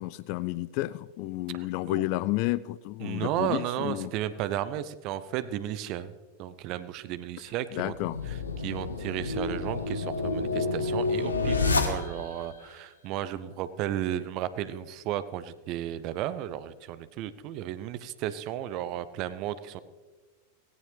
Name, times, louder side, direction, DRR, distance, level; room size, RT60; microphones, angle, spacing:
voice 1, 0.0-4.1 7.7-8.2, left 17 dB, 45° left, 19 dB, 0.4 m, -31 dB
voice 2, 1.5-2.1 3.0-6.1 6.4-7.9 8.3-19.8, right 12 dB, 40° right, 14 dB, 0.7 m, -34 dB
sound 1, 7.9-12.4, left 3 dB, 75° left, 1.3 m, -29 dB
17.5 x 17.0 x 3.3 m, 1.4 s
figure-of-eight pair, 90°, 0 cm